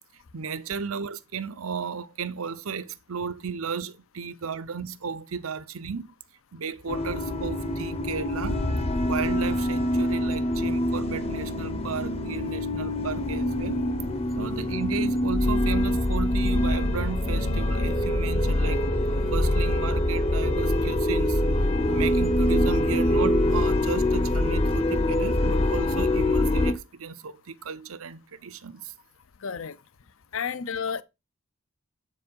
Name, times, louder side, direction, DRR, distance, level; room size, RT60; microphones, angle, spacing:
voice 1, 0.3-6.1 6.5-8.6 9.0-13.8 14.4-18.9 19.2-21.4 21.8-28.9, right 5 dB, 80° right, 0.7 m, -34 dB
sound 1, 6.9-26.7, left 1 dB, 30° left, 0.8 m, -24 dB
voice 2, 29.4-29.8 30.3-31.0, left 6 dB, 70° left, 0.6 m, -31 dB
7.6 x 4.9 x 5.3 m
head